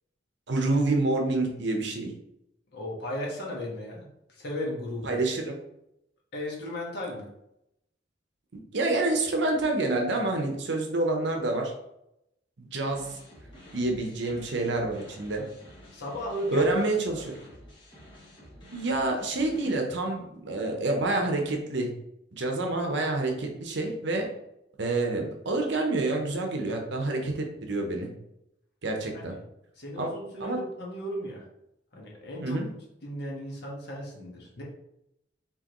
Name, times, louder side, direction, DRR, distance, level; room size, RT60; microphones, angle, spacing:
voice 1, 0.5-2.1 5.0-5.6 8.7-11.7 12.6-13.2 13.7-15.4 16.5-17.3 18.7-21.9 22.3-24.3 24.8-28.1 28.8-29.4 30.0-30.1 30.4-30.6 32.4-32.7, right 2 dB, 65° right, 2 dB, 0.8 m, -28 dB
voice 2, 2.7-5.2 6.3-7.3 15.9-16.7 17.1-17.2 29.1-29.4 29.8-31.4 31.9-32.6 33.0-34.6, equal, 60° left, -2 dB, 1.4 m, -35 dB
sound 1, 12.8-19.8, equal, 25° left, 1.4 m, -50 dB
4.7 x 3.6 x 3.0 m, 0.82 s
head